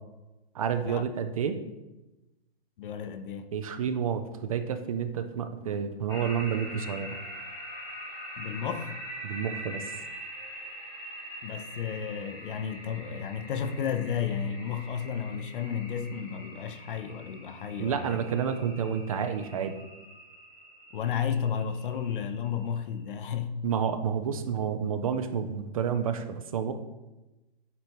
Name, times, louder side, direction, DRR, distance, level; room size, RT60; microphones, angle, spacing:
voice 1, 0.5-1.6 3.5-7.1 9.2-9.8 17.8-19.8 23.6-26.7, right 7 dB, 35° right, 0.4 m, -30 dB
voice 2, 2.8-3.5 8.4-9.0 11.4-18.2 20.9-23.5, left 7 dB, 55° left, 0.6 m, -32 dB
sound 1, 6.1-22.8, equal, 10° left, 1.0 m, -44 dB
8.2 x 2.8 x 4.5 m
hypercardioid pair, 150°, 32 cm